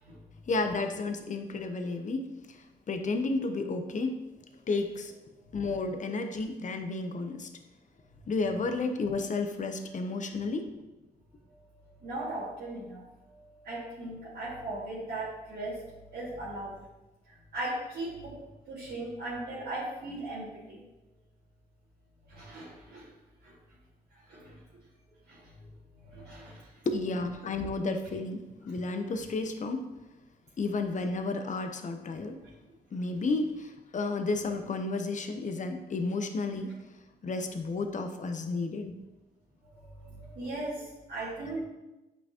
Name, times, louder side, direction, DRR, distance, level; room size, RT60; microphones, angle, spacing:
voice 1, 0.5-4.2 4.7-5.2 5.5-7.5 8.3-10.8 26.9-29.9 30.6-32.4 32.9-36.7 37.2-38.9, left 3 dB, 45° left, 6 dB, 0.8 m, -32 dB
voice 2, 12.0-16.8 17.5-18.3 18.7-20.8 22.2-23.1 23.4-23.5 24.3-24.6 25.3-25.7 26.0-26.6 28.0-28.1 39.7-41.6, right 2 dB, 70° right, -10 dB, 2.3 m, -38 dB
8.3 x 5.6 x 2.9 m, 1.0 s
supercardioid pair, 60°, 18 cm